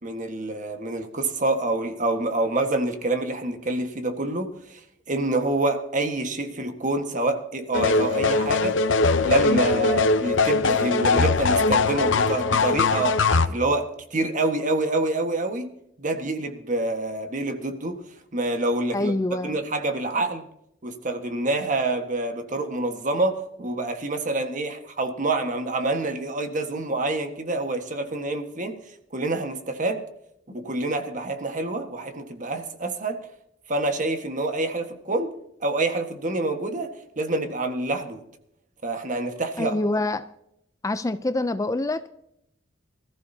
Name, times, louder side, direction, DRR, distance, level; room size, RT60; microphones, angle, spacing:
voice 1, 0.0-4.8 5.1-15.7 16.0-18.0 18.3-19.1 19.4-20.4 20.8-28.8 29.1-30.0 30.5-33.2 33.7-35.3 35.6-38.2 38.8-39.8, right 2 dB, 40° right, 6 dB, 1.5 m, -27 dB
sound 1, 7.7-13.5, left 3 dB, 70° left, 0.8 m, -21 dB
voice 2, 18.9-19.6 39.6-40.3 40.8-42.1, left 2 dB, 15° left, 12 dB, 0.4 m, -26 dB
25.0 x 14.5 x 2.8 m, 0.78 s
head